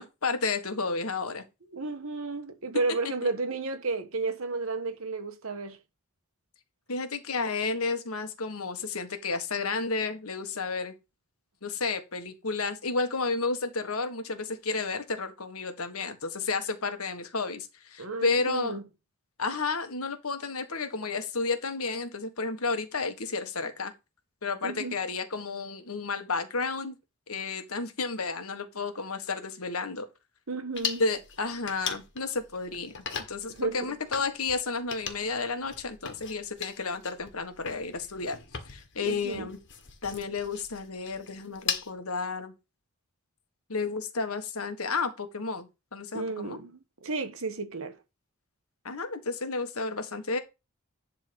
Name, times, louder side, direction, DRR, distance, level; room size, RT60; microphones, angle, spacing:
voice 1, 0.0-1.4 6.9-10.9 11.6-18.8 19.4-23.9 24.4-27.0 27.3-30.1 31.0-38.4 38.7-39.6 40.0-42.5 43.7-46.6 48.8-50.4, left 4 dB, 70° left, 1.5 m, -32 dB
voice 2, 1.7-5.8 18.0-18.8 24.6-25.0 30.5-31.0 33.5-34.0 39.0-39.5 46.1-48.0, right 3 dB, 65° right, 1.3 m, -32 dB
sound 1, 30.8-41.9, left 7 dB, 55° left, 1.8 m, -39 dB
11.0 x 3.8 x 5.2 m
head